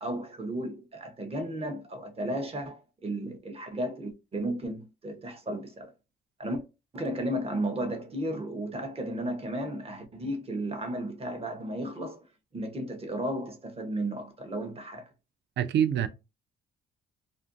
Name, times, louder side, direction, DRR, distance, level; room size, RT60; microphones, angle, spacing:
voice 1, 0.0-5.9 6.4-6.6 6.9-12.2 12.5-15.1, right 1 dB, 30° right, 0.7 m, -34 dB
voice 2, 15.6-16.1, right 9 dB, 65° right, 0.4 m, -25 dB
2.4 x 2.2 x 2.5 m
cardioid pair, 90°, 20 cm